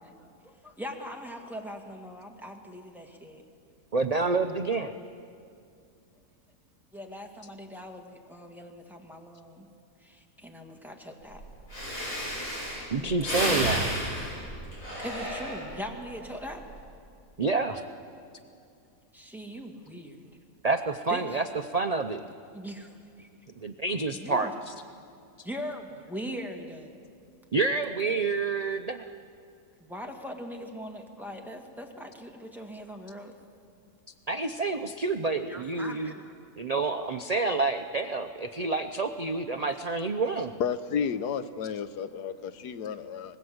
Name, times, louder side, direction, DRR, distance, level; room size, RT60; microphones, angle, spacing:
voice 1, 0.0-3.4 6.9-9.7 10.0-11.4 13.0-13.7 15.0-16.6 19.1-20.3 21.1-21.4 22.5-23.3 24.1-24.5 25.4-26.9 29.8-33.3 35.5-36.4, equal, ahead, 2 dB, 1.9 m, -41 dB
voice 2, 3.9-4.9 12.9-13.9 17.4-17.8 20.6-21.4 21.7-22.2 23.6-24.7 27.5-29.1 34.3-36.1 36.6-40.5, right 3 dB, 55° right, 7 dB, 0.4 m, -28 dB
Breathing, 11.4-11.5 11.7-15.9 16.4-16.8, equal, 55° left, 7.3 m, -32 dB
voice 3, 40.6-43.4, left 7 dB, 80° left, 12 dB, 1.4 m, -32 dB
25.0 x 20.0 x 7.9 m, 2.4 s
omnidirectional pair, 1.7 m